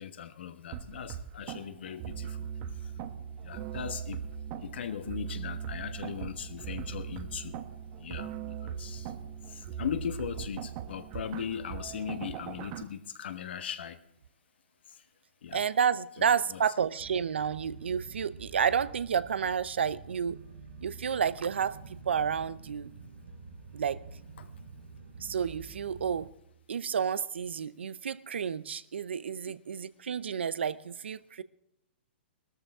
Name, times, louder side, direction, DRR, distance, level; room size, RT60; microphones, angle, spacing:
voice 1, 0.0-2.5 2.8-2.9 3.4-4.3 4.6-7.5 8.0-9.1 9.5-14.0 14.9-15.0 15.4-15.6 16.5-16.6 24.4-24.5, left 8 dB, 70° left, 1.3 m, -39 dB
sound 1, 0.7-12.8, right 8 dB, 40° right, 1.1 m, -40 dB
voice 2, 15.5-20.4 20.8-22.9 23.7-24.0 25.2-26.3 26.7-31.4, right 7 dB, 90° right, 0.6 m, -30 dB
sound 2, 17.0-26.3, right 4 dB, 70° right, 5.3 m, -48 dB
18.0 x 13.5 x 3.6 m
hypercardioid pair, 145°, 6 cm